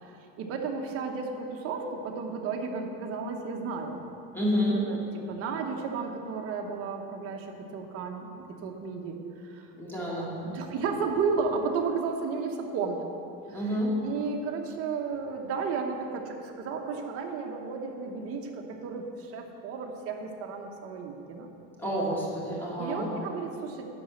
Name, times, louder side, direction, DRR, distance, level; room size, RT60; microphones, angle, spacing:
voice 1, 0.0-4.0 4.7-9.7 10.1-13.1 13.5-21.5 22.8-23.9, right 5 dB, 40° right, 2 dB, 1.1 m, -33 dB
voice 2, 4.3-4.8 9.8-10.3 13.5-13.9 21.8-23.1, equal, 5° left, -6 dB, 2.2 m, -29 dB
11.0 x 4.2 x 7.7 m, 2.9 s
cardioid pair, 155°, 35 cm